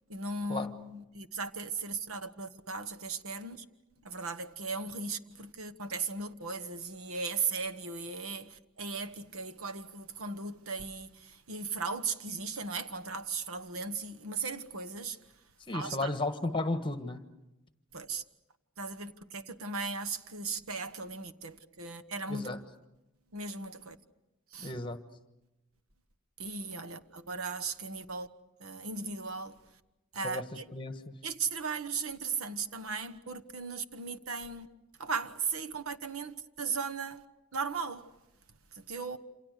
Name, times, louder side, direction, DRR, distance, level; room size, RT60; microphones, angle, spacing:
voice 1, 0.1-3.6 4.0-15.2 15.7-16.1 17.9-18.2 18.8-22.5 23.3-24.0 24.5-24.7 26.4-28.3 28.6-29.6 30.1-30.7 31.2-34.7 35.0-37.2 37.5-38.1 38.7-39.2, right 4 dB, 85° right, 1.3 m, -37 dB
voice 2, 15.7-17.2 22.3-22.6 24.6-25.0 30.2-30.4 30.7-31.1, left 2 dB, 25° left, 1.4 m, -34 dB
27.5 x 27.5 x 6.6 m
head